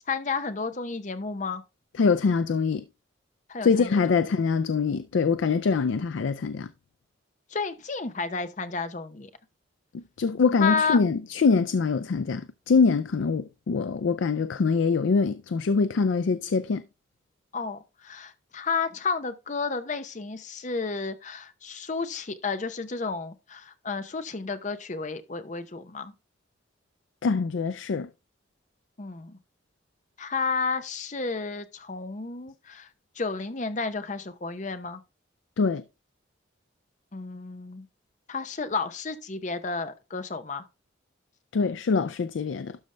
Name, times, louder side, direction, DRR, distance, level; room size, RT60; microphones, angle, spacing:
voice 1, 0.1-1.6 3.5-4.2 7.5-9.3 10.6-11.0 17.5-26.1 29.0-29.4 30.2-32.9 33.2-35.0 37.1-37.9 38.3-40.7, left 4 dB, 40° left, 0.7 m, -31 dB
voice 2, 1.9-2.8 3.6-6.7 9.9-16.8 27.2-28.1 35.6-35.8 41.5-42.8, left 4 dB, 70° left, 0.4 m, -24 dB
12.0 x 5.1 x 3.3 m
head